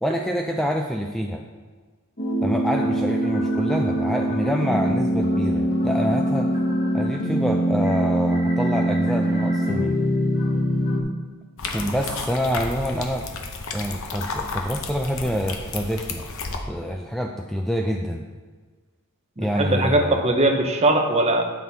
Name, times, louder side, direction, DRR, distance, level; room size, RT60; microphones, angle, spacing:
voice 1, 0.0-1.4 2.4-6.5 6.9-10.1 11.7-13.3 13.7-16.3 16.7-18.3 19.4-20.2, equal, ahead, 2 dB, 0.3 m, -26 dB
sound 1, 2.2-11.0, right 1 dB, 40° left, 1.4 m, -23 dB
sound 2, 11.6-16.6, left 3 dB, 65° left, 0.9 m, -32 dB
voice 2, 19.4-21.4, right 2 dB, 30° right, 4 dB, 0.8 m, -20 dB
9.1 x 6.0 x 4.1 m, 1.4 s
head